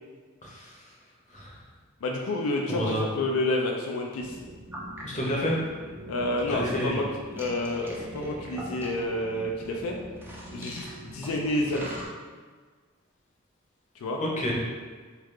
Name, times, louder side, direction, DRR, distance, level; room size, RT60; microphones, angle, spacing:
voice 1, 0.4-0.7 1.3-1.5 2.7-3.0 5.0-5.6 6.5-7.1 14.2-14.6, equal, 35° left, -4 dB, 0.7 m, -29 dB
voice 2, 2.0-4.4 6.1-7.0 7.3-10.0 10.5-12.0 14.0-14.2, left 1 dB, 85° left, 0 dB, 0.4 m, -29 dB
sound 1, 4.2-12.1, equal, 10° right, 0.4 m, -42 dB
3.3 x 2.4 x 3.1 m, 1.5 s
head